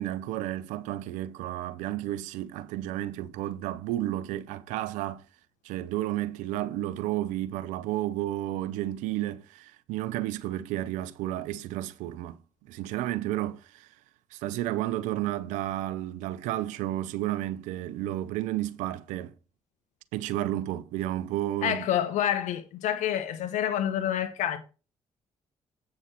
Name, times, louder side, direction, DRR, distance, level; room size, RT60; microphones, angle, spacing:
voice 1, 0.0-5.2 5.6-12.4 12.7-13.9 14.3-19.3 20.1-21.9, right 14 dB, 85° right, 0.7 m, -32 dB
voice 2, 21.6-24.6, left 10 dB, 75° left, 1.3 m, -28 dB
8.6 x 6.3 x 4.5 m
supercardioid pair, 55°, 12 cm